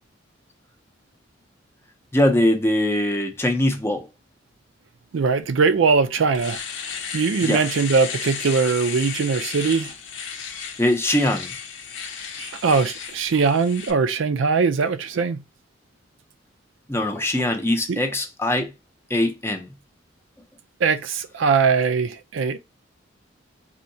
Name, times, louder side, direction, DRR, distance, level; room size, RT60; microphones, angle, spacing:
voice 1, 2.1-4.1 7.4-7.7 10.8-11.5 16.9-18.7 19.1-19.7, left 1 dB, 15° left, 0.6 m, -22 dB
voice 2, 5.1-6.6 7.1-9.9 12.4-15.4 17.9-18.0 20.8-22.6, right 5 dB, 80° right, 0.4 m, -21 dB
Domestic sounds home sounds, 5.7-5.8 6.2-13.9, left 6 dB, 80° left, 0.8 m, -34 dB
4.3 x 2.7 x 2.6 m
head